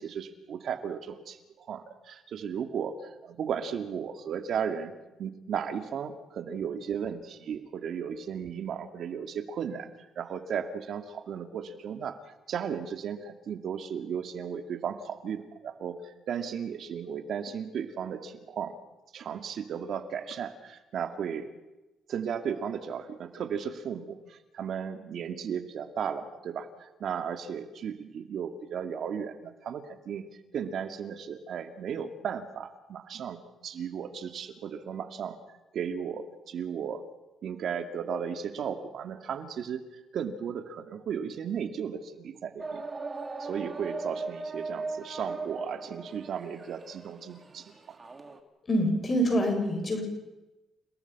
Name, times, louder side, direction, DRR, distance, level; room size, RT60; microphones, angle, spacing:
voice 1, 0.0-4.9 5.2-9.9 10.2-12.2 12.5-18.8 19.1-21.5 22.1-30.3 30.5-37.0 37.4-42.8 43.4-48.0, right 7 dB, 65° right, 8 dB, 2.3 m, -35 dB
sound 1, 42.6-48.4, right 3 dB, 30° right, 2.9 m, -39 dB
voice 2, 48.6-50.0, equal, 35° left, 3 dB, 7.1 m, -26 dB
30.0 x 18.5 x 6.1 m, 1.0 s
cardioid pair, 90°, 0 cm